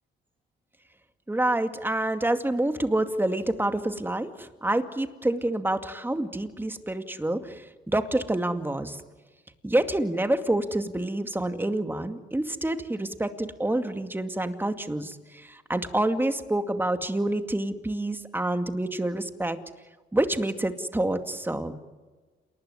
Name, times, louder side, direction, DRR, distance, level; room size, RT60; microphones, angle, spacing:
voice 1, 1.3-9.0 9.6-19.6 20.1-21.8, right 1 dB, 10° right, 7 dB, 2.3 m, -27 dB
28.0 x 20.0 x 9.8 m, 1.3 s
cardioid pair, 90°, 20 cm